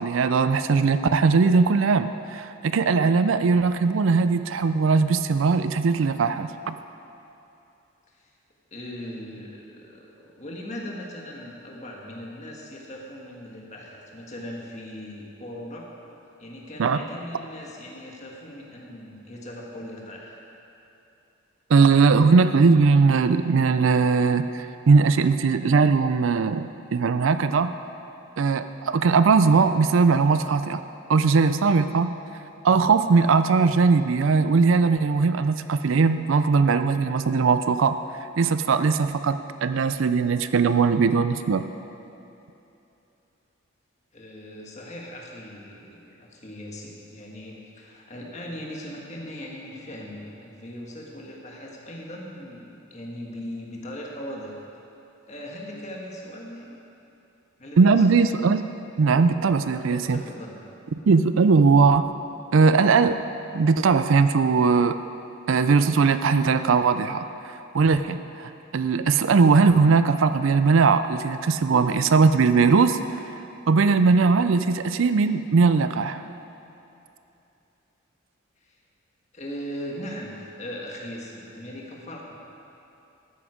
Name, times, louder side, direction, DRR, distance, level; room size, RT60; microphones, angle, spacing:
voice 1, 0.0-6.7 16.8-17.0 21.7-27.8 28.4-30.8 31.1-32.1 32.6-38.0 38.4-41.6 57.8-58.6 59.0-60.2 61.1-62.1 62.5-63.2 63.5-65.0 65.5-67.3 67.7-73.0 73.7-76.2, right 4 dB, 70° right, 11 dB, 0.4 m, -20 dB
voice 2, 8.7-15.9 16.4-20.4 44.1-54.7 55.3-56.8 57.6-58.2 59.9-60.5 78.6-78.8 79.3-82.3, equal, 35° left, -2 dB, 1.6 m, -39 dB
12.5 x 9.4 x 5.0 m, 2.9 s
head